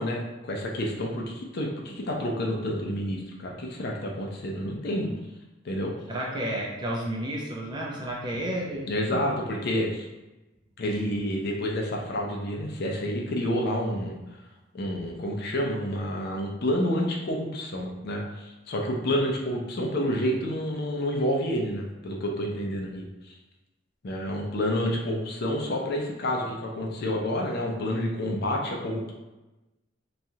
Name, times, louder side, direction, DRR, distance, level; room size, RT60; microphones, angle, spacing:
voice 1, 0.0-5.1 5.6-5.9 8.9-10.1 10.8-14.2 14.7-23.3 24.0-29.1, equal, 55° left, 0 dB, 0.5 m, -29 dB
voice 2, 6.1-9.4, right 1 dB, 25° right, -3 dB, 0.5 m, -32 dB
3.0 x 2.3 x 2.7 m, 1.1 s
head